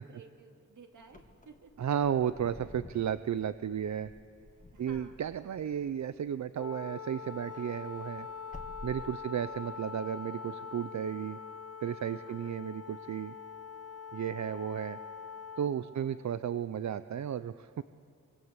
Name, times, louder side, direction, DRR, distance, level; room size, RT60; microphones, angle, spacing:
voice 1, 0.0-1.7 4.7-5.2 9.0-9.1 12.2-12.6, right 5 dB, 85° right, 4 dB, 2.4 m, -55 dB
Wind / Car, 1.0-6.8 7.2-9.6, left 2 dB, 25° left, 2.0 m, -52 dB
voice 2, 1.8-4.1 4.8-8.3 8.8-11.4 11.8-13.3 14.1-15.0 15.6-17.8, right 9 dB, 65° right, 13 dB, 0.6 m, -33 dB
Wind instrument woodwind instrument, 6.5-15.7, left 6 dB, 55° left, 1.5 m, -44 dB
24.5 x 24.5 x 8.1 m, 2.3 s
wide cardioid pair, 155°, 30 cm